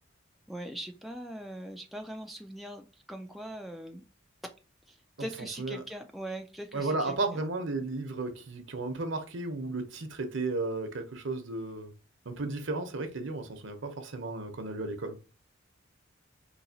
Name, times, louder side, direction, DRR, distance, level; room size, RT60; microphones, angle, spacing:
voice 1, 0.5-4.0 4.9-7.4, right 1 dB, ahead, 0.3 m, -41 dB
voice 2, 6.7-11.9 12.3-15.2, right 3 dB, 65° right, 0.8 m, -34 dB
4.0 x 2.8 x 2.7 m
head